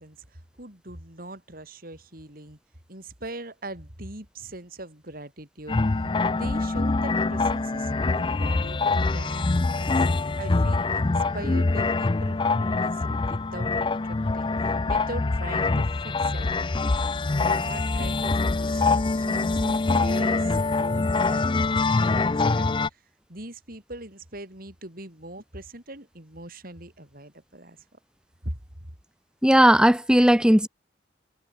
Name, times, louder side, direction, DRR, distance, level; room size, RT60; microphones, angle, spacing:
voice 1, 0.0-2.6 2.9-10.1 10.4-16.8 17.4-22.1 22.5-23.0 23.3-28.0 28.4-28.6, right 1 dB, 55° right, 7.8 m, -41 dB
sound 1, 5.7-22.9, left 3 dB, 25° left, 0.5 m, -24 dB
voice 2, 29.4-30.7, equal, 5° right, 1.6 m, -17 dB
head